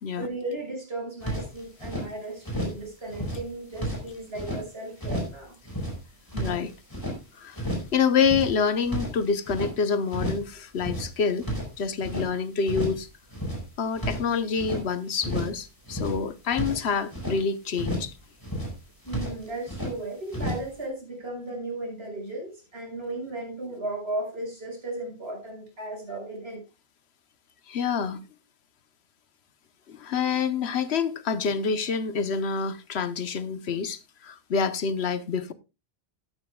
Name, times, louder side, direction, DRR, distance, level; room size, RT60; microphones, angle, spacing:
voice 1, 0.2-5.5 19.0-26.6, right 2 dB, 75° right, 6.2 m, -35 dB
sound 1, 1.2-2.1 2.4-2.8 3.1-4.6 5.0-5.4 5.6-7.2 7.5-7.9 8.2-9.7 10.1-10.5 10.7-12.3 12.6-13.0 13.3-14.8 15.2-15.6 15.8-17.4 17.7-18.1 18.4-18.8 19.0-19.9 20.3-20.7, equal, 20° left, 5.0 m, -32 dB
voice 2, 6.3-7.1 7.4-7.6 7.9-11.5 11.8-13.1 13.8-18.1 27.7-28.2 29.9-35.5, left 6 dB, 90° left, 1.2 m, -27 dB
13.5 x 12.5 x 2.3 m
omnidirectional pair, 1.1 m